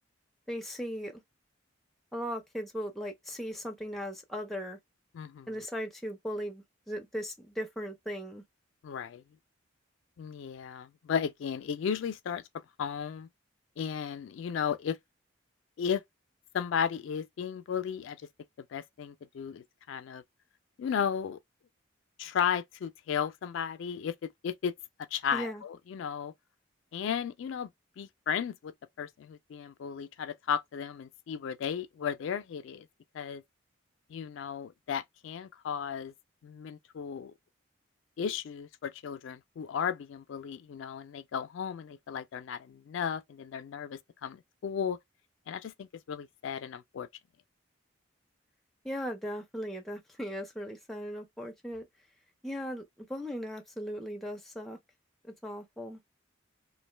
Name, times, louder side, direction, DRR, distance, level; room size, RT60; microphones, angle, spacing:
voice 1, 0.5-1.2 2.1-4.8 5.5-8.4 25.3-25.6 48.8-51.9 52.4-54.8 55.2-56.0, equal, ahead, 0.4 m, -38 dB
voice 2, 5.1-5.5 8.8-9.2 10.2-12.4 12.8-13.3 13.8-15.0 15.8-16.0 16.5-18.2 18.7-20.2 20.8-21.4 22.2-24.7 25.1-26.3 26.9-27.7 28.0-28.7 29.0-32.9 33.1-33.4 34.1-36.1 36.4-37.3 38.2-45.0 45.5-47.1, left 7 dB, 70° left, 0.3 m, -34 dB
2.4 x 2.1 x 3.1 m
head